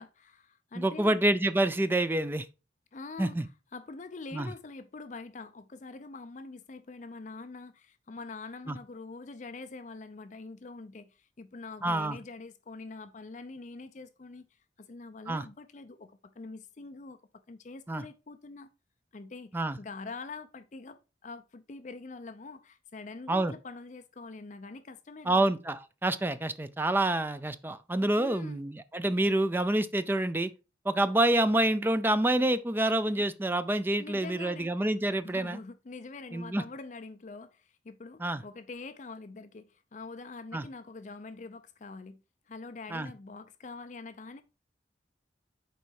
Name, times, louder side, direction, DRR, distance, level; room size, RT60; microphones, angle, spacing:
voice 1, 0.0-1.2 2.9-17.2 17.5-18.7 19.1-25.5 28.2-28.6 33.2-33.3 34.0-34.7 35.2-42.2 42.5-44.4, left 3 dB, 40° left, 0.5 m, -45 dB
voice 2, 0.8-2.5 3.2-3.4 4.3-4.5 8.7-8.8 11.8-12.2 15.3-15.4 17.9-18.0 19.5-19.8 23.3-23.5 25.3-30.5 30.8-35.6 36.3-36.6 38.2-38.4 40.5-40.6 42.9-43.1, right 1 dB, 10° right, 0.4 m, -27 dB
6.9 x 4.5 x 4.7 m
head